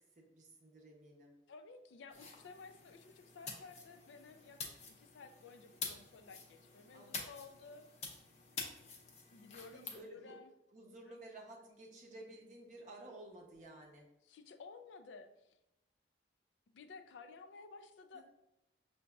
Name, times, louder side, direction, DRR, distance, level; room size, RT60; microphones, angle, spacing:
voice 1, 0.0-1.4 6.9-7.2 9.7-10.4 10.7-14.1 18.1-18.2, right 1 dB, 40° right, 0 dB, 0.6 m, -54 dB
voice 2, 1.5-7.9 9.3-10.5 11.1-11.2 11.6-11.8 14.2-15.6 16.7-18.2, left 4 dB, 90° left, 8 dB, 0.4 m, -55 dB
sound 1, 2.1-10.0, left 4 dB, 40° left, 0.6 m, -48 dB
5.8 x 2.6 x 2.3 m, 0.91 s
head